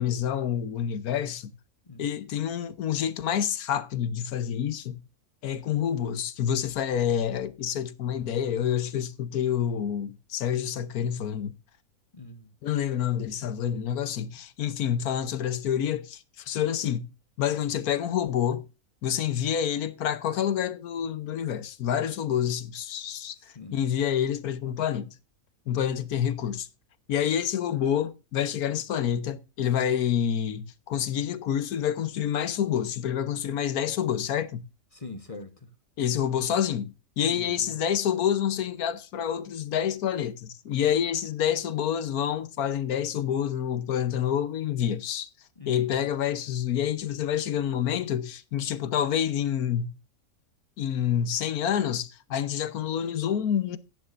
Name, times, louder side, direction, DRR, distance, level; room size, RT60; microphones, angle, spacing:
voice 1, 0.0-1.5 2.0-5.0 5.4-11.6 12.6-17.1 17.4-18.7 19.0-23.4 23.7-25.1 25.7-26.7 27.1-34.6 36.0-45.3 45.7-50.0 50.8-53.8, left 9 dB, 85° left, 1.4 m, -28 dB
voice 2, 12.1-12.5 23.4-23.8 34.9-35.7 37.2-37.8 45.6-46.1, left 3 dB, 25° left, 1.0 m, -43 dB
15.0 x 10.0 x 2.5 m
omnidirectional pair, 1.5 m